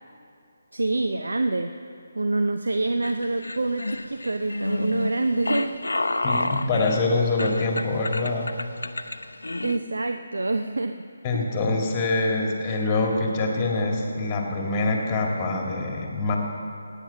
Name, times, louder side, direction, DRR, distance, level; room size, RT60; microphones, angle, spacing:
voice 1, 0.7-1.7 2.1-5.7 9.6-10.9 11.3-11.5, right 2 dB, 70° right, 7 dB, 0.5 m, -26 dB
sound 1, 3.0-9.8, left 2 dB, 75° left, 0.6 m, -29 dB
voice 2, 6.2-8.5 11.2-16.4, left 2 dB, 20° left, 0 dB, 2.0 m, -25 dB
16.5 x 9.1 x 5.8 m, 2.5 s
figure-of-eight pair, 150°, 0 cm